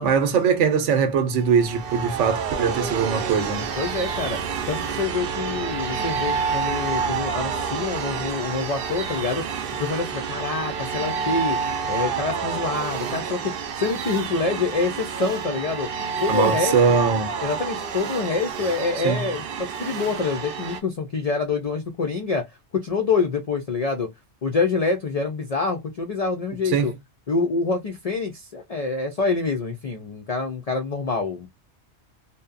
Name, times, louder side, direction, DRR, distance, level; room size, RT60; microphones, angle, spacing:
voice 1, 0.0-3.7 16.3-17.3 19.0-19.2 26.7-26.9, right 6 dB, 85° right, 0.9 m, -21 dB
sound 1, 1.4-20.8, right 6 dB, 60° right, 0.7 m, -29 dB
voice 2, 3.8-4.4 4.7-11.6 11.9-15.9 16.2-16.8 17.4-19.4 19.8-22.5 22.7-24.1 24.4-26.9 27.3-31.5, left 4 dB, 60° left, 0.4 m, -26 dB
2.7 x 2.2 x 2.3 m
omnidirectional pair, 1.2 m